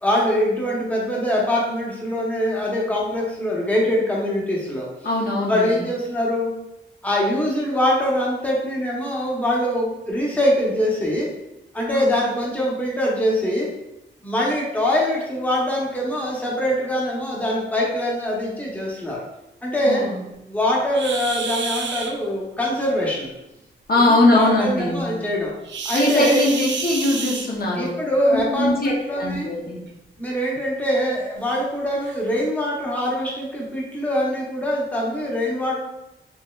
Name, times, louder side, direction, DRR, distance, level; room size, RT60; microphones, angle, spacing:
voice 1, 0.0-4.9 5.5-6.5 7.0-11.3 11.7-13.7 14.2-19.2 19.6-20.0 20.4-23.3 24.0-25.5 25.8-26.5 27.8-29.5 30.2-35.8, equal, 10° left, -4 dB, 0.9 m, -23 dB
voice 2, 5.0-5.7 11.9-12.1 19.9-20.2 23.9-25.1 25.9-27.9 28.3-29.8, left 2 dB, 50° left, -3 dB, 0.7 m, -21 dB
sound 1, 20.9-22.1 25.6-27.9 29.1-29.3 29.9-30.0 30.5-30.6 31.4-31.5 32.0-32.2, right 5 dB, 70° right, 0.4 m, -30 dB
4.2 x 2.7 x 2.4 m, 0.92 s
wide cardioid pair, 105°, 20 cm